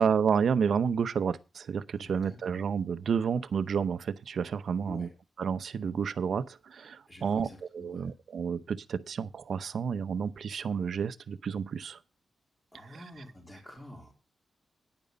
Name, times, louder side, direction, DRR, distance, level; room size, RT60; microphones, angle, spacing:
voice 1, 0.0-5.1 5.4-7.5 7.7-12.0 12.8-13.0, right 6 dB, 65° right, 0.7 m, -30 dB
voice 2, 2.0-2.6 4.8-5.1 7.1-8.1 12.7-14.1, left 1 dB, 10° left, 3.8 m, -48 dB
9.9 x 9.1 x 5.3 m
wide cardioid pair, 135°, 0 cm